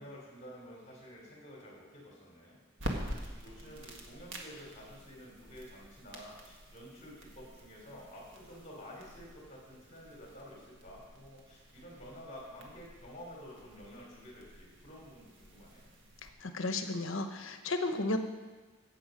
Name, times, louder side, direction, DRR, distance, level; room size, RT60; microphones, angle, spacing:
voice 1, 0.0-2.6 2.9-15.9, equal, 35° left, -3 dB, 3.3 m, -50 dB
sound 1, 2.8-16.3, right 1 dB, 65° right, 1.6 m, -47 dB
voice 2, 16.4-18.2, left 2 dB, 70° left, 7 dB, 1.0 m, -33 dB
14.0 x 8.2 x 5.2 m, 1.3 s
head